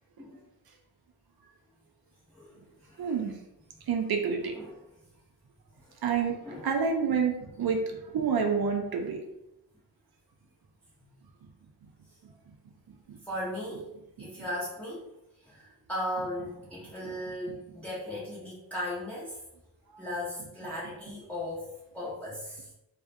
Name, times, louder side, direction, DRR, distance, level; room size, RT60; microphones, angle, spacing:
voice 1, 2.3-3.3 4.5-4.7 5.8-6.0 6.4-6.7 13.2-13.9 14.2-15.1 15.4-19.4 20.0-22.7, left 1 dB, 5° left, -9 dB, 0.8 m, -37 dB
voice 2, 3.0-3.4 3.9-4.6 6.0-6.4 6.6-9.2 13.1-13.2 14.2-14.3 17.5-17.6 19.9-20.0, right 6 dB, 55° right, 2 dB, 0.5 m, -28 dB
2.4 x 2.1 x 2.5 m, 0.89 s
cardioid pair, 55°, 46 cm